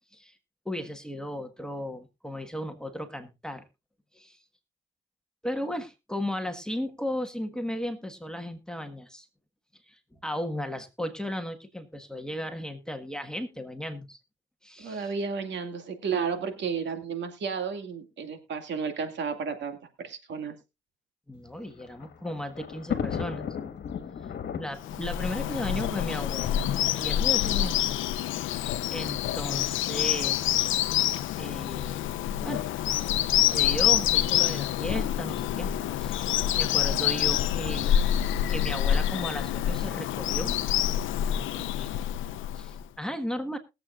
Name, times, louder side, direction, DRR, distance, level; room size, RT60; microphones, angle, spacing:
voice 1, 0.6-3.6 4.1-4.4 5.4-9.3 9.9-14.2 14.6-15.1 21.3-23.4 24.6-26.7 27.0-27.8 28.9-30.5 31.4-32.0 32.4-32.7 33.5-35.7 36.0-38.0 38.5-40.6 41.5-41.9 42.5-43.6, equal, 5° left, 7 dB, 1.5 m, -35 dB
voice 2, 14.8-20.6, right 6 dB, 65° right, 6 dB, 2.3 m, -32 dB
Thunder, 21.4-26.8 27.6-27.7 27.9-28.0 29.1-29.4, left 7 dB, 60° left, 1.6 m, -36 dB
Bird vocalization bird call bird song, 24.8-42.8, left 11 dB, 80° left, 0.6 m, -27 dB
21.0 x 7.8 x 2.5 m, 0.26 s
cardioid pair, 90°, 20 cm